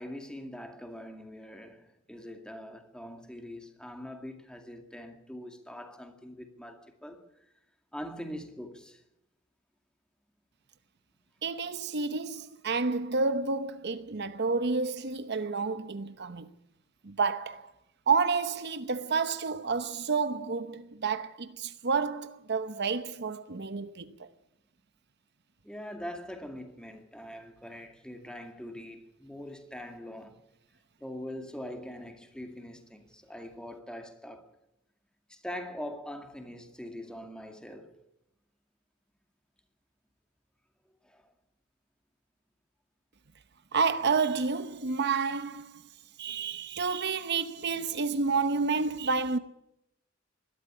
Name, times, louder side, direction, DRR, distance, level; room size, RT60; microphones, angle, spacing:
voice 1, 0.0-7.5 7.9-9.0 25.6-30.4 31.0-34.5 35.3-38.0 41.0-41.3, equal, 5° left, 2.2 m, -43 dB
voice 2, 11.4-16.5 17.0-17.7 18.1-24.3 43.7-45.8 46.2-49.4, right 4 dB, 55° right, 0.9 m, -30 dB
21.5 x 12.5 x 9.8 m
head